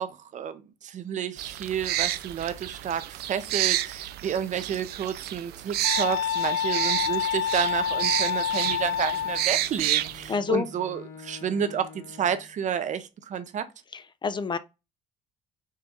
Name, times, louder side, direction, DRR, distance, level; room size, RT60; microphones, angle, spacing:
voice 1, 0.0-13.7, right 8 dB, 45° right, 0.7 m, -30 dB
sound 1, 1.4-10.3, right 14 dB, 70° right, 0.4 m, -30 dB
sound 2, 5.8-9.5, left 9 dB, 80° left, 0.5 m, -27 dB
Bowed string instrument, 7.8-12.6, left 6 dB, 60° left, 1.8 m, -48 dB
voice 2, 10.3-10.7 13.9-14.6, left 6 dB, 25° left, 0.4 m, -28 dB
4.6 x 2.8 x 3.7 m
cardioid pair, 110°, 17 cm